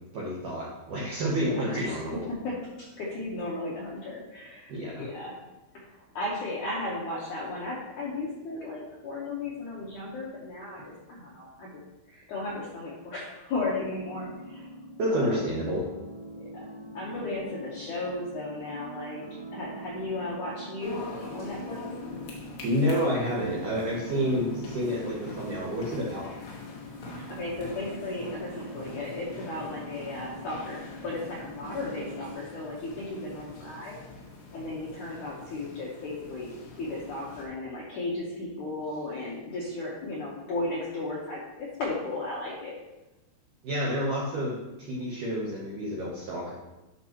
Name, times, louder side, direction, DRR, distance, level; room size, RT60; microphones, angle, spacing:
voice 1, 0.1-2.2 4.7-5.1 15.0-15.9 22.6-26.3 43.6-46.5, equal, 90° right, -5 dB, 1.8 m, -29 dB
voice 2, 1.4-2.0 2.3-5.3 5.9-11.7 12.1-14.7 15.1-15.5 16.4-16.6 16.9-21.0 21.3-21.8 27.0-34.0 34.5-36.5 36.8-42.8, left 2 dB, 85° left, -6 dB, 1.7 m, -35 dB
sound 1, 13.6-32.3, equal, 55° right, 4.2 m, -43 dB
sound 2, 20.8-37.4, left 3 dB, 65° left, 3.1 m, -44 dB
11.0 x 5.4 x 3.0 m, 1.0 s
omnidirectional pair, 5.4 m